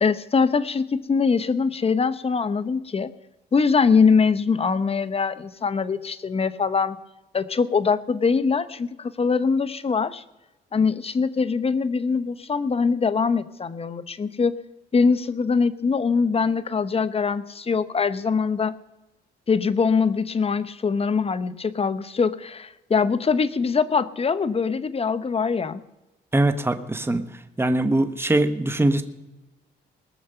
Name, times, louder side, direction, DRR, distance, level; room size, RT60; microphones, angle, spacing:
voice 1, 0.0-3.1 3.5-7.0 7.3-10.2 10.7-14.6 14.9-18.7 19.5-25.8, left 5 dB, 30° left, 14 dB, 0.8 m, -22 dB
voice 2, 26.3-27.2 27.6-29.0, right 2 dB, 10° right, 9 dB, 1.2 m, -22 dB
20.5 x 7.0 x 6.7 m, 1.0 s
cardioid pair, 90°, 20 cm